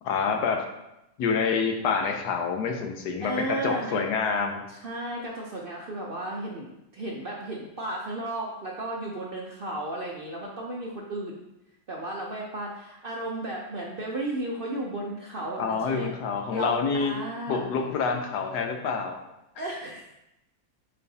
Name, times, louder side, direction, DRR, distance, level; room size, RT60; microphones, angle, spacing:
voice 1, 0.0-0.7 1.2-4.6 15.6-17.2 17.5-19.2 19.6-19.7, left 5 dB, 80° left, 5 dB, 1.3 m, -27 dB
voice 2, 3.2-4.0 4.7-11.4 11.9-16.1 16.5-17.7 19.6-20.0, right 2 dB, 55° right, -2 dB, 0.6 m, -34 dB
8.5 x 4.3 x 2.8 m, 0.90 s
omnidirectional pair, 1.7 m